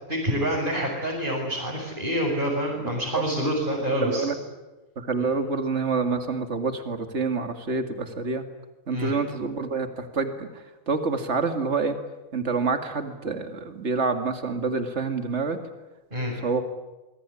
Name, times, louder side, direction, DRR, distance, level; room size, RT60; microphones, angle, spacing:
voice 1, 0.1-4.3 8.9-9.2 16.1-16.4, equal, 35° right, -4 dB, 7.1 m, -27 dB
voice 2, 3.8-4.4 5.0-8.4 8.9-12.0 12.3-15.6 16.3-16.6, right 4 dB, 55° right, 7 dB, 2.5 m, -27 dB
26.0 x 22.5 x 10.0 m, 1.1 s
omnidirectional pair, 1.4 m